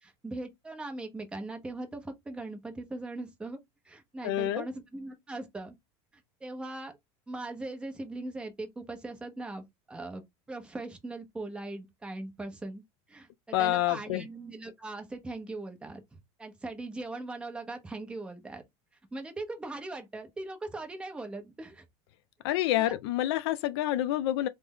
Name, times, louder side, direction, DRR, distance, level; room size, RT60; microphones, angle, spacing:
voice 1, 0.0-3.6 3.8-5.8 6.4-6.9 7.3-10.2 10.5-12.8 13.1-18.6 19.1-21.8 22.5-23.0, right 2 dB, 5° right, 0.7 m, -40 dB
voice 2, 4.2-4.6 13.5-14.2 22.4-24.5, left 14 dB, 75° left, 0.4 m, -28 dB
3.2 x 2.1 x 3.6 m
supercardioid pair, 150°, 14 cm